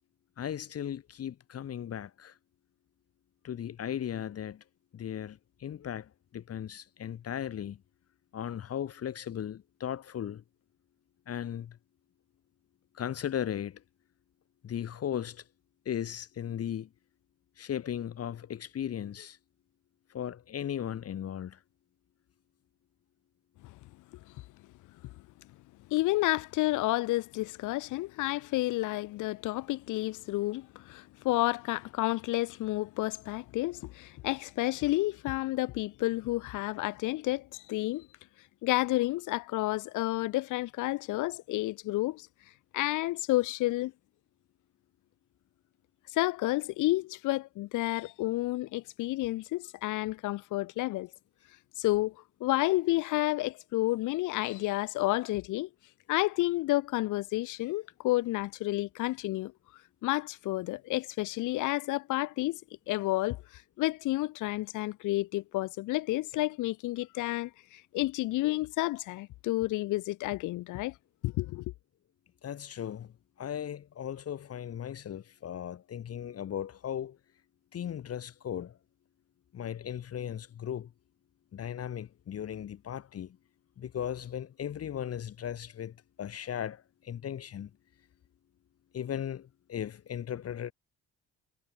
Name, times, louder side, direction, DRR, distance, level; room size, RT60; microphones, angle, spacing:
voice 1, 0.4-2.4 3.4-4.6 4.9-7.8 8.3-10.4 11.3-11.8 12.9-13.8 14.6-15.4 15.8-16.9 17.6-19.4 20.1-21.6 72.4-77.2 77.7-78.8 79.5-80.9 81.5-83.4 83.8-87.7 88.9-90.7, left 9 dB, 55° left, 1.2 m, -37 dB
voice 2, 25.9-38.1 38.6-42.3 42.7-43.9 46.1-51.1 51.8-52.1 52.4-55.7 56.1-59.5 60.0-62.6 62.9-70.9 71.2-71.6, left 18 dB, 80° left, 0.6 m, -30 dB
cardioid pair, 90°, 30 cm